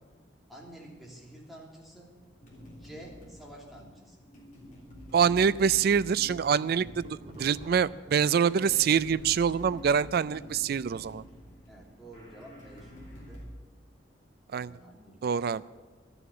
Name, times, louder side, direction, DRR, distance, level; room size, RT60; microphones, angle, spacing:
voice 1, 0.5-2.1 2.7-4.2 9.1-9.2 11.7-13.4 14.5-15.4, right 1 dB, ahead, -4 dB, 3.0 m, -50 dB
sound 1, 2.4-13.4, equal, 45° left, 3.2 m, -48 dB
voice 2, 5.1-11.2 14.5-14.7 15.2-15.6, right 7 dB, 55° right, 18 dB, 0.4 m, -25 dB
sound 2, 6.9-8.8 9.1-11.5, equal, 35° right, 1.6 m, -51 dB
12.5 x 7.0 x 9.8 m, 1.3 s
head